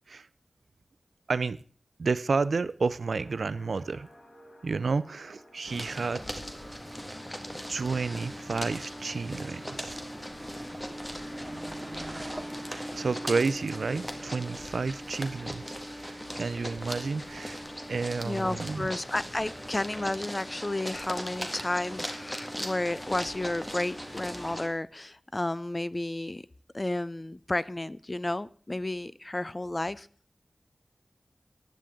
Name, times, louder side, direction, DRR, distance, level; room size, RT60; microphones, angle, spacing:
voice 1, 2.0-4.1 4.6-6.3 7.7-10.0 12.0-17.6 17.9-18.9, right 4 dB, 85° right, 16 dB, 0.5 m, -31 dB
sound 1, 3.0-20.6, equal, 85° left, 7.4 m, -59 dB
sound 2, 5.6-24.7, equal, 10° left, 1.9 m, -39 dB
sound 3, 8.3-15.3, right 1 dB, 5° right, 2.3 m, -46 dB
voice 2, 18.2-26.5 26.7-30.1, left 2 dB, 30° left, 18 dB, 0.5 m, -32 dB
15.0 x 10.5 x 3.7 m, 0.44 s
wide cardioid pair, 55°, 0 cm